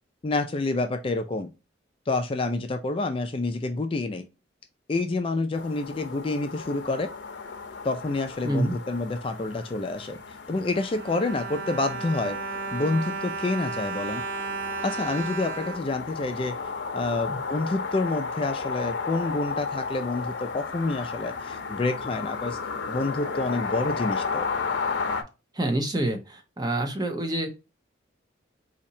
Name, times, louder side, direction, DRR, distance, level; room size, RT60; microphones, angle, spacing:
voice 1, 0.2-1.5 2.1-4.3 4.9-7.1 7.8-10.2 10.5-12.4 12.7-14.2 14.8-16.6 16.9-22.6 22.9-24.5, left 2 dB, 30° left, 0.4 m, -28 dB
sound 1, 5.5-25.2, left 5 dB, 70° left, 0.6 m, -34 dB
voice 2, 8.4-8.7 17.3-17.4 25.5-27.5, right 1 dB, 20° right, 0.6 m, -27 dB
Bowed string instrument, 10.5-16.8 17.4-17.5 17.8-18.0, right 4 dB, 90° right, 0.6 m, -34 dB
4.2 x 2.8 x 2.6 m
head